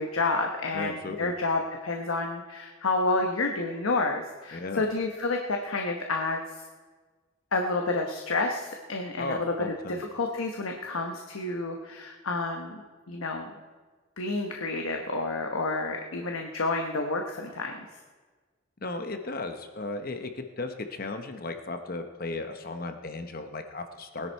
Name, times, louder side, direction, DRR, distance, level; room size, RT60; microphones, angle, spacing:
voice 1, 0.0-6.4 7.5-9.5 9.9-12.8 13.1-13.5 14.2-17.7, left 3 dB, 80° left, 2 dB, 1.1 m, -29 dB
voice 2, 0.7-1.3 4.5-4.8 9.2-10.0 18.8-24.3, left 2 dB, 45° left, 7 dB, 0.9 m, -35 dB
19.5 x 10.5 x 4.5 m, 1.4 s
head